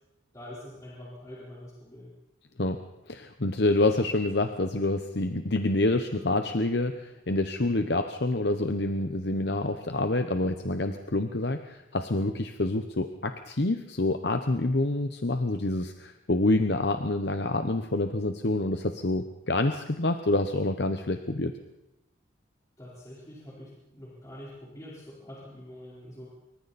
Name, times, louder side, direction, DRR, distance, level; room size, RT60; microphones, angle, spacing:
voice 1, 0.3-2.1 22.8-26.3, left 1 dB, 20° left, -6 dB, 4.5 m, -45 dB
voice 2, 3.1-21.5, left 2 dB, 60° left, 7 dB, 1.0 m, -27 dB
26.0 x 23.5 x 4.3 m, 0.89 s
head